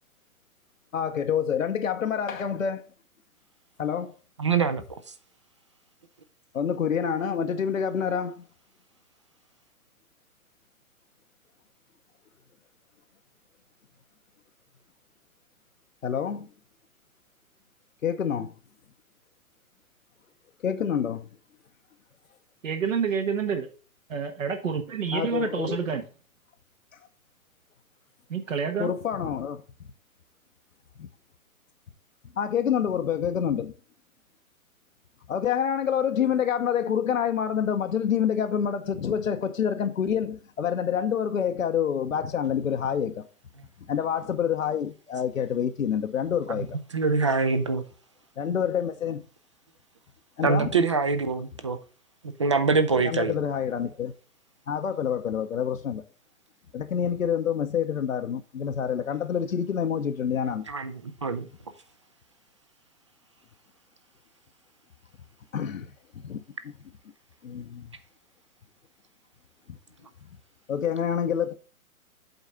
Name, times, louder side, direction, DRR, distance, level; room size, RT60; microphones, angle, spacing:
voice 1, 0.9-2.8 3.8-4.1 6.5-8.4 16.0-16.5 18.0-18.5 20.6-21.3 25.1-25.9 28.8-29.6 32.4-33.7 35.3-43.3 43.9-46.8 48.4-49.2 50.4-50.7 53.0-54.1 54.7-56.0 56.7-60.6 65.5-65.9 66.2-66.4 67.4-67.9 70.7-71.5, left 8 dB, 65° left, 0.8 m, -27 dB
voice 2, 4.4-4.8 46.5-46.7 46.9-47.8 50.4-51.8 52.2-53.4 60.7-61.5, right 4 dB, 25° right, 0.4 m, -24 dB
voice 3, 22.6-23.7 24.1-26.0 28.3-28.9, right 6 dB, 60° right, 1.3 m, -28 dB
7.9 x 4.0 x 5.5 m
figure-of-eight pair, 120°, 43 cm